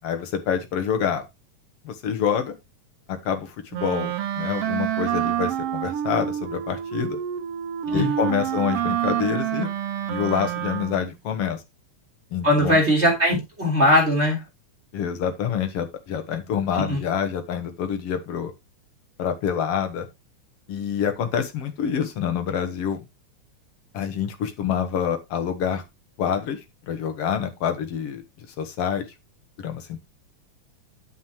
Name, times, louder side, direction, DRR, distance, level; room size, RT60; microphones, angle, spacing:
voice 1, 0.0-1.2 1.8-2.6 3.1-7.2 7.9-9.7 10.1-11.6 12.3-12.8 14.9-18.5 19.2-20.1 20.7-23.0 23.9-25.8 26.2-26.6 26.9-28.2 28.6-29.0 29.6-30.0, left 8 dB, 60° left, 6 dB, 2.0 m, -27 dB
Wind instrument woodwind instrument, 3.7-11.2, right 11 dB, 65° right, 1.8 m, -27 dB
voice 2, 12.4-14.4 16.7-17.0, equal, 20° right, 0 dB, 3.4 m, -20 dB
9.5 x 8.2 x 3.0 m, 0.22 s
omnidirectional pair, 3.4 m